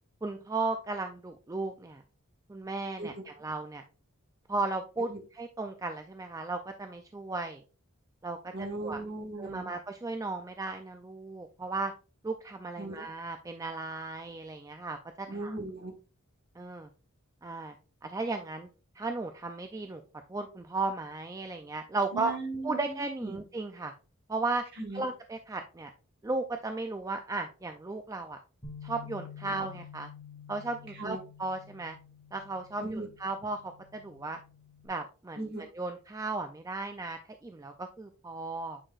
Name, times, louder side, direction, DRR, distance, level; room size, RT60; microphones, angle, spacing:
voice 1, 0.2-2.0 2.5-3.8 4.5-7.6 8.2-9.0 9.4-11.9 12.2-15.6 16.6-16.9 17.4-17.8 18.0-18.7 19.0-20.0 20.3-22.3 22.6-23.9 24.3-24.7 24.9-25.9 26.2-28.4 28.8-30.1 30.5-32.0 32.3-34.4 34.8-38.8, right 3 dB, 15° right, 6 dB, 0.3 m, -35 dB
voice 2, 8.5-9.7 12.8-13.0 15.3-15.9 22.1-23.4 24.8-25.0 30.9-31.2 32.8-33.1 35.3-35.6, right 2 dB, 45° right, 3 dB, 1.4 m, -38 dB
Bass guitar, 28.6-34.9, left 7 dB, 25° left, 1.8 m, -49 dB
8.7 x 4.7 x 2.4 m, 0.35 s
head